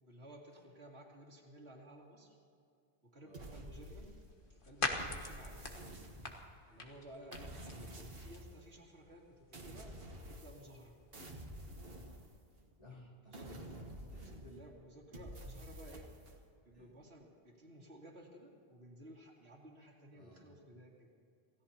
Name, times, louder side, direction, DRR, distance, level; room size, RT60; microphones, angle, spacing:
voice 1, 0.0-2.4 3.0-4.1 4.5-5.6 6.7-7.5 7.9-10.0 10.3-11.0 13.2-13.5 14.2-16.1 16.6-21.1, right 1 dB, 90° right, -3 dB, 3.0 m, -55 dB
voice 2, 3.2-3.6 5.5-6.2 6.7-7.0 12.8-13.5 14.1-14.4 15.5-15.6 16.7-17.0 20.1-20.6, left 1 dB, 30° left, -4 dB, 4.5 m, -60 dB
sound 1, 3.3-4.5 5.0-6.6 7.3-8.6 9.5-10.8 11.1-12.7 13.3-14.7 15.1-16.4, right 1 dB, 65° right, 1.8 m, -50 dB
sound 2, 3.6-12.3, left 3 dB, 55° left, 1.6 m, -46 dB
27.5 x 17.0 x 2.9 m, 2.5 s
omnidirectional pair, 1.1 m